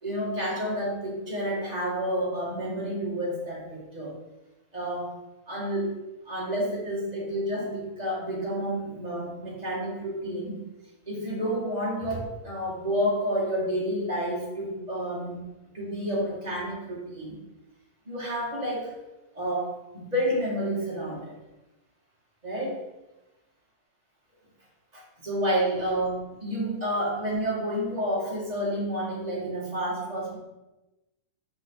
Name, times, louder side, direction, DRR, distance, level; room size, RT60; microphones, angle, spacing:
voice 1, 0.0-4.2 4.7-5.1 5.5-6.0 6.2-10.6 11.1-15.4 15.7-17.4 18.1-18.9 19.3-21.3 22.4-22.8 24.9-30.4, equal, 15° right, -6 dB, 1.8 m, -30 dB
7.8 x 5.5 x 4.1 m, 1.0 s
omnidirectional pair, 3.5 m